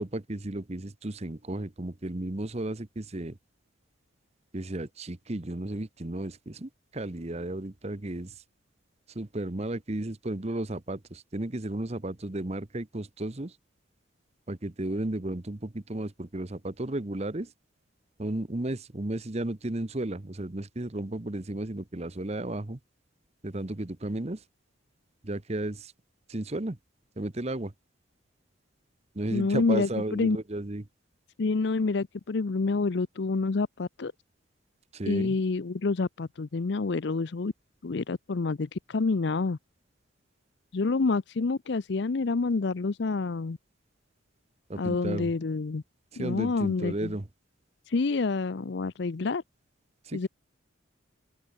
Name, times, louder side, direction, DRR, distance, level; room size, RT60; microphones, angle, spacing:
voice 1, 0.0-3.4 4.5-8.3 9.1-13.5 14.5-17.5 18.2-22.8 23.4-24.4 25.2-25.9 26.3-26.8 27.2-27.7 29.1-30.8 34.9-35.4 44.7-45.3 46.1-47.3 50.0-50.3, right 1 dB, 30° right, 1.0 m, -34 dB
voice 2, 29.3-30.4 31.4-34.1 35.1-37.5 37.8-39.6 40.7-43.6 44.8-45.8 46.2-47.1 47.9-49.4 50.1-50.3, left 3 dB, 60° left, 0.5 m, -28 dB
open air
head